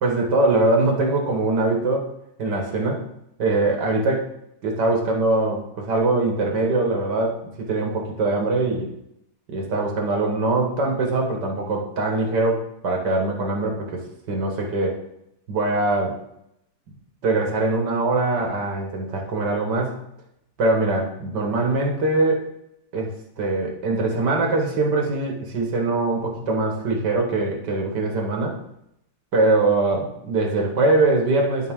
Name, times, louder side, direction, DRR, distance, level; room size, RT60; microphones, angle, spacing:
voice 1, 0.0-2.1 2.4-3.1 3.4-4.3 4.6-8.9 9.5-14.0 14.3-15.0 15.5-16.2 17.2-20.0 20.6-22.4 22.9-28.6 29.3-31.7, right 2 dB, 80° right, 1 dB, 2.2 m, -22 dB
11.5 x 5.4 x 3.7 m, 0.77 s
omnidirectional pair, 1.8 m